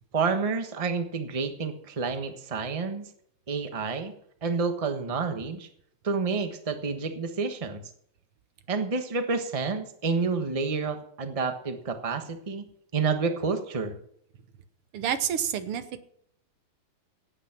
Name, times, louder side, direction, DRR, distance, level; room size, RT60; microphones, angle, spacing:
voice 1, 0.1-3.1 3.5-4.1 4.4-5.7 6.0-7.8 8.7-12.7 12.9-14.0, right 4 dB, 20° right, 7 dB, 1.0 m, -29 dB
voice 2, 14.9-16.0, right 9 dB, 85° right, 11 dB, 2.0 m, -29 dB
16.5 x 8.9 x 6.0 m, 0.67 s
omnidirectional pair, 2.4 m